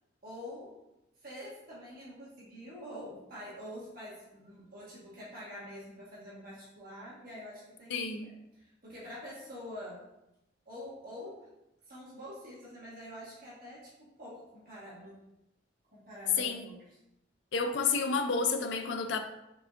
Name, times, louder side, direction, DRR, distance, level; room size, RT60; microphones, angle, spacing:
voice 1, 0.2-0.7 1.2-10.0 10.6-11.5 11.9-15.2 15.9-16.8, equal, 50° right, -8 dB, 1.5 m, -46 dB
voice 2, 7.9-8.3 16.4-16.6 17.5-19.2, left 4 dB, 70° left, 7 dB, 0.4 m, -30 dB
4.7 x 3.6 x 2.5 m, 0.89 s
head